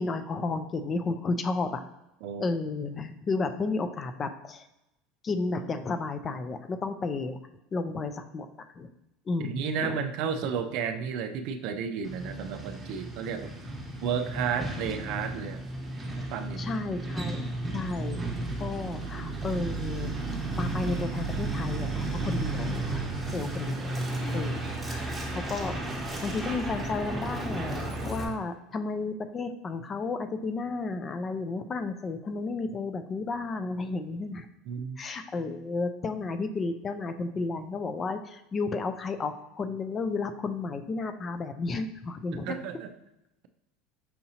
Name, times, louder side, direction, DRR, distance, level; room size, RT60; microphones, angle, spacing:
voice 1, 0.0-1.8 2.4-4.7 5.2-7.4 7.7-8.5 8.8-8.9 9.3-10.0 16.6-17.5 17.7-18.3 18.6-20.1 20.6-23.0 23.3-23.8 24.3-24.6 24.9-25.8 26.2-34.5 35.0-42.6, left 3 dB, 30° left, 9 dB, 0.3 m, -32 dB
voice 2, 2.2-2.6 9.4-13.5 14.0-15.6 16.3-16.8 23.3-23.5 34.7-35.0 42.3-42.9, right 6 dB, 65° right, 8 dB, 0.4 m, -32 dB
Truck, 12.0-28.2, right 2 dB, 15° right, 0.9 m, -33 dB
5.6 x 2.7 x 2.8 m, 0.89 s
supercardioid pair, 110°, 0 cm